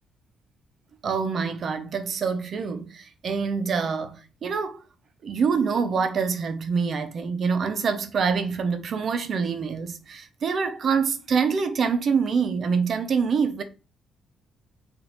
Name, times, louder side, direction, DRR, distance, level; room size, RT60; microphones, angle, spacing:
voice 1, 1.0-4.8 5.2-13.6, right 5 dB, 55° right, 0.7 m, -25 dB
3.9 x 2.6 x 4.5 m
cardioid pair, 90°, 0 cm